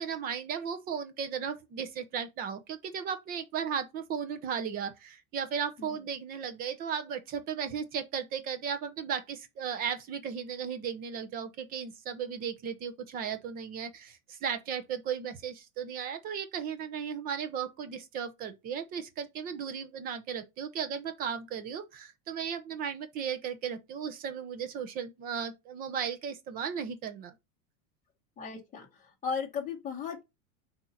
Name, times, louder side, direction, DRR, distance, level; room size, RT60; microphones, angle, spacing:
voice 1, 0.0-27.3, right 7 dB, 20° right, 0.7 m, -36 dB
voice 2, 28.4-30.2, left 6 dB, 15° left, 1.7 m, -36 dB
6.1 x 2.8 x 5.6 m
supercardioid pair, 165°, 42 cm